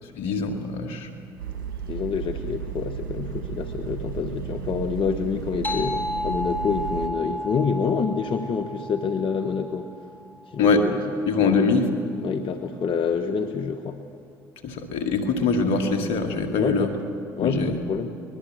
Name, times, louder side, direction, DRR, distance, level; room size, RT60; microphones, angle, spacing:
voice 1, 0.1-1.1 10.6-10.9 11.2-11.9 14.6-16.9 17.4-17.8, left 4 dB, 70° left, 5 dB, 2.3 m, -23 dB
sound 1, 1.4-7.1, right 8 dB, 85° right, 1.7 m, -34 dB
voice 2, 1.9-9.9 10.5-11.0 11.4-11.7 12.2-14.0 16.6-16.9 17.4-18.1, left 6 dB, 50° left, 7 dB, 1.2 m, -27 dB
sound 2, 5.6-10.6, left 1 dB, 15° left, 3.3 m, -33 dB
23.5 x 20.5 x 7.7 m, 2.5 s
hypercardioid pair, 60°, 11 cm